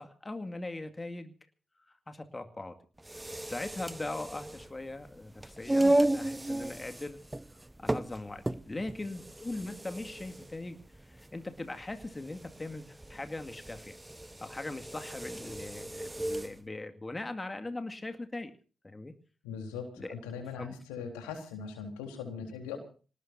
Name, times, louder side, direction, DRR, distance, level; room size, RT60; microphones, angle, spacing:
voice 1, 0.0-1.3 1.9-2.8 3.5-7.2 7.8-14.0 14.4-18.5 18.8-19.1 20.0-20.1 20.6-20.7, left 2 dB, 25° left, 7 dB, 2.2 m, -40 dB
sound 1, 3.0-16.6, right 1 dB, 15° right, 0.8 m, -34 dB
voice 2, 19.4-22.8, left 6 dB, 85° left, 5 dB, 4.0 m, -40 dB
26.5 x 19.0 x 2.7 m, 0.38 s
hypercardioid pair, 40°, 0 cm